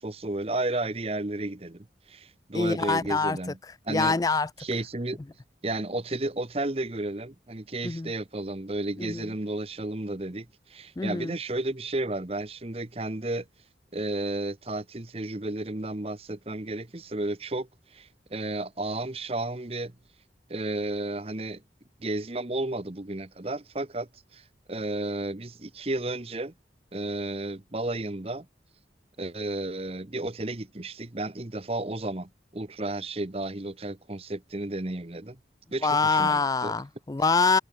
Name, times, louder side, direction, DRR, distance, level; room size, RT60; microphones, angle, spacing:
voice 1, 0.0-3.6 3.8-4.2 4.6-5.2 5.6-13.5 13.9-19.9 20.5-21.6 22.0-26.5 26.9-28.5 29.2-35.4 35.7-36.7, right 2 dB, 35° right, 1.0 m, -33 dB
voice 2, 2.5-3.4 3.9-4.5 7.8-8.1 9.0-9.3 11.0-11.3 35.8-37.6, left 4 dB, 20° left, 0.3 m, -25 dB
head